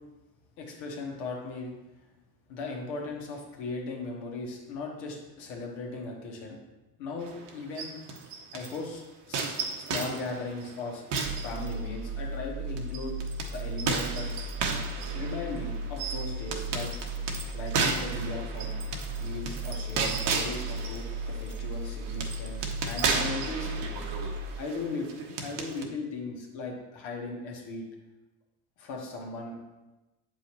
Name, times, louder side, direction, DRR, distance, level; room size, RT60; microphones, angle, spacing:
voice 1, 0.6-1.7 2.5-6.6 7.0-7.9 8.5-11.0 11.3-13.1 13.5-14.3 15.1-16.9 17.5-18.7 19.2-23.7 24.6-25.1 25.4-27.8 28.8-29.5, left 3 dB, 80° left, 0 dB, 1.5 m, -37 dB
sound 1, 7.2-8.8 9.3-12.2 12.8-25.8, right 4 dB, 60° right, 1.1 m, -34 dB
sound 2, 11.2-24.6, right 2 dB, 25° right, 0.4 m, -36 dB
7.5 x 5.3 x 3.0 m, 1.1 s
hypercardioid pair, 65°, 48 cm